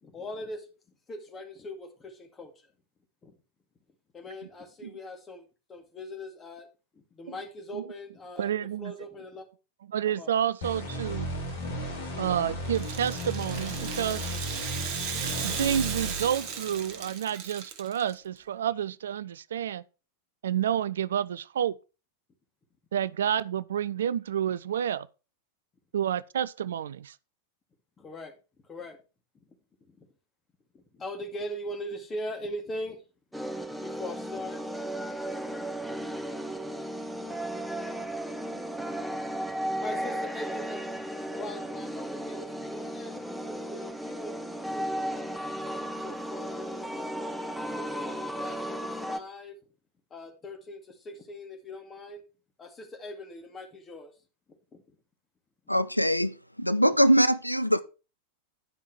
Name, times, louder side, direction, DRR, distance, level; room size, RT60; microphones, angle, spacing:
voice 1, 0.0-0.7 1.1-2.5 3.2-3.3 4.1-5.4 5.7-6.7 7.1-8.5 8.8-9.4 10.1-10.3 28.0-28.3 28.7-29.0 29.9-30.1 30.7-33.0 33.8-34.6 37.3-37.6 38.0-38.6 39.8-40.8 41.3-45.3 46.0-49.6 50.1-52.2 52.6-54.1 54.7-54.8 55.7-55.8, left 1 dB, 20° left, 2.1 m, -41 dB
voice 2, 8.4-8.9 9.9-11.3 12.1-14.3 15.4-19.8 20.4-21.7 22.9-25.1 25.9-27.1, right 9 dB, 65° right, 0.3 m, -29 dB
sound 1, 10.6-17.1, equal, 60° left, 3.0 m, -35 dB
Rattle (instrument), 12.6-18.1, right 7 dB, 45° right, 1.2 m, -36 dB
sound 2, 33.3-49.2, right 1 dB, ahead, 1.0 m, -35 dB
voice 3, 55.7-57.8, equal, 90° left, 0.4 m, -23 dB
10.5 x 5.4 x 4.4 m
figure-of-eight pair, 90°, 0 cm